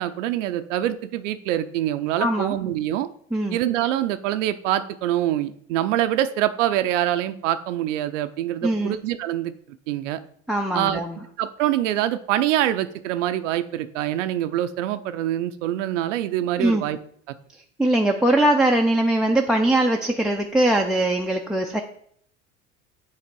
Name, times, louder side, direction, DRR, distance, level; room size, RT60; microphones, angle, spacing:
voice 1, 0.0-3.1 3.5-9.5 9.9-10.2 10.7-11.0 11.4-17.0, right 12 dB, 75° right, 11 dB, 0.6 m, -25 dB
voice 2, 2.2-2.6 3.3-3.6 8.6-9.0 10.5-11.2 16.6-16.8 17.8-21.8, right 1 dB, ahead, 4 dB, 0.4 m, -21 dB
7.5 x 3.2 x 4.6 m, 0.65 s
hypercardioid pair, 75°, 37 cm